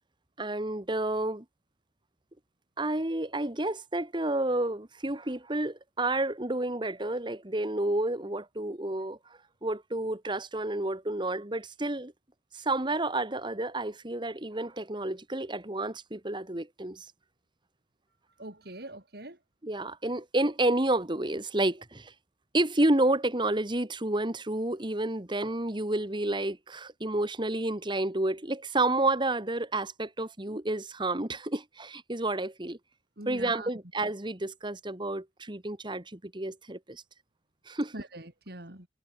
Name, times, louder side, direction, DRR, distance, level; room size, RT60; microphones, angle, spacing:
voice 1, 0.4-1.4 2.8-9.2 9.6-12.1 12.5-17.1 19.6-22.1 22.5-32.8 33.3-37.0 37.7-37.9, right 2 dB, 25° right, 1.9 m, -30 dB
voice 2, 18.4-19.4 33.2-33.7 37.9-38.9, right 1 dB, 60° right, 4.5 m, -43 dB
head